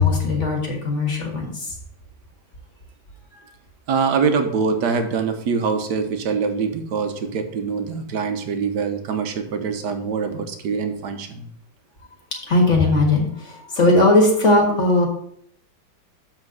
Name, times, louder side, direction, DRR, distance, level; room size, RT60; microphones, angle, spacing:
voice 1, 0.0-1.7 12.5-15.1, left 2 dB, 40° left, 0 dB, 1.8 m, -18 dB
voice 2, 3.9-11.5, right 5 dB, 65° right, 7 dB, 1.5 m, -24 dB
7.3 x 4.3 x 6.3 m, 0.68 s
omnidirectional pair, 2.1 m